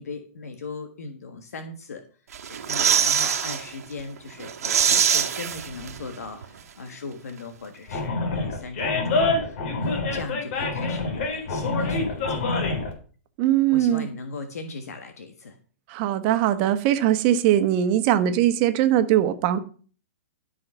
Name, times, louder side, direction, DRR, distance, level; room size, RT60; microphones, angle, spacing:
voice 1, 0.0-2.0 2.5-12.7 13.7-15.6, left 3 dB, 85° left, 1.6 m, -38 dB
sound 1, 2.3-3.6 4.0-4.1 4.4-6.2 6.4-6.5, right 8 dB, 75° right, 1.5 m, -23 dB
Animal, 7.9-12.9, left 3 dB, 50° left, 3.7 m, -26 dB
voice 2, 13.4-14.1 15.9-19.6, right 11 dB, 40° right, 1.3 m, -21 dB
12.5 x 5.8 x 5.6 m
hypercardioid pair, 140°, 8 cm